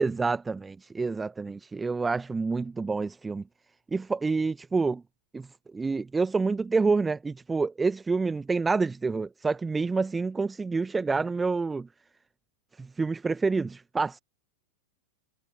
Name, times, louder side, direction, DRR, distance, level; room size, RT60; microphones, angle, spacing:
voice 1, 0.0-3.4 3.9-5.0 5.3-5.5 5.7-11.9 12.8-14.2, right 4 dB, 10° right, 1.0 m, -28 dB
figure-of-eight pair, 90°, 0 cm